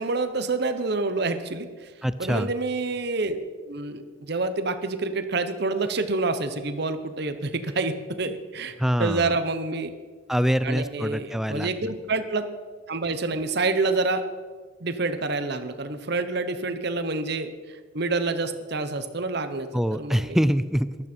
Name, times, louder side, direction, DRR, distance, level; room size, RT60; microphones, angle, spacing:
voice 1, 0.0-1.9 2.2-3.4 3.7-9.9 10.6-12.5 12.9-14.2 14.8-20.4, right 3 dB, 55° right, 10 dB, 0.9 m, -28 dB
voice 2, 2.0-2.5 8.8-9.4 10.3-11.9 19.7-21.1, equal, ahead, 13 dB, 0.3 m, -25 dB
15.0 x 12.0 x 4.4 m, 1.5 s
head